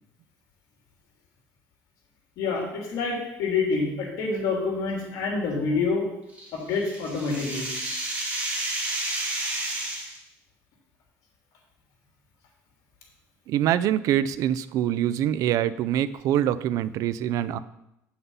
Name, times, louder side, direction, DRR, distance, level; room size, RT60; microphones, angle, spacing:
voice 1, 2.4-6.1 6.5-7.7, left 4 dB, 75° left, 0 dB, 3.1 m, -27 dB
sound 1, 6.3-10.2, right 1 dB, 20° right, 2.7 m, -31 dB
voice 2, 13.5-17.6, right 11 dB, 65° right, 15 dB, 0.4 m, -24 dB
9.3 x 5.9 x 5.5 m, 0.88 s
cardioid pair, 125°, 6 cm